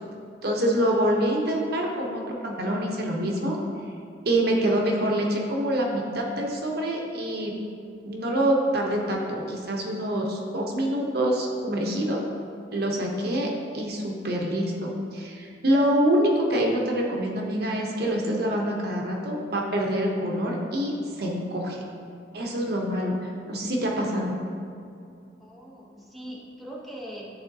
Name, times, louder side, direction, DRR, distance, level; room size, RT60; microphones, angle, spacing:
voice 1, 0.4-3.6 4.3-7.5 8.0-12.2 12.7-21.8 22.3-24.3, right 1 dB, 60° right, -1 dB, 0.8 m, -26 dB
voice 2, 25.4-27.3, right 1 dB, ahead, -5 dB, 0.9 m, -41 dB
10.5 x 3.8 x 2.7 m, 2.5 s
head